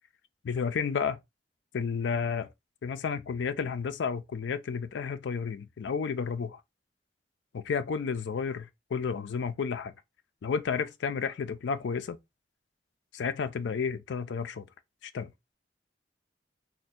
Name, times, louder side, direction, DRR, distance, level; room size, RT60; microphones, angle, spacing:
voice 1, 0.4-1.2 1.7-2.5 2.8-6.6 7.5-9.9 10.4-12.2 13.1-14.7 15.0-15.3, left 6 dB, 75° left, 0.4 m, -31 dB
2.6 x 2.2 x 4.0 m
head